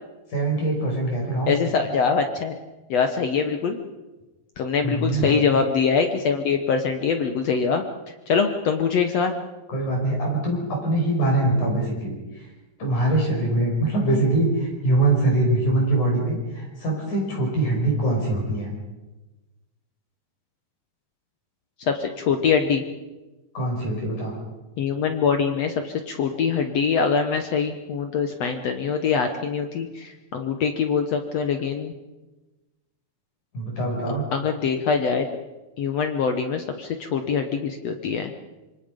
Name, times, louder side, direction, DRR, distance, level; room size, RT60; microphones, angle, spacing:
voice 1, 0.3-1.6 4.8-5.4 9.7-12.1 12.8-18.7 23.6-24.4 33.5-34.2, right 2 dB, 50° left, 0 dB, 6.9 m, -23 dB
voice 2, 1.5-2.6 2.9-3.8 4.6-7.8 8.3-9.3 21.8-22.8 24.8-31.9 34.3-35.3 35.8-38.3, left 6 dB, 70° left, 6 dB, 1.5 m, -23 dB
26.5 x 24.0 x 5.2 m, 1.1 s
omnidirectional pair, 4.5 m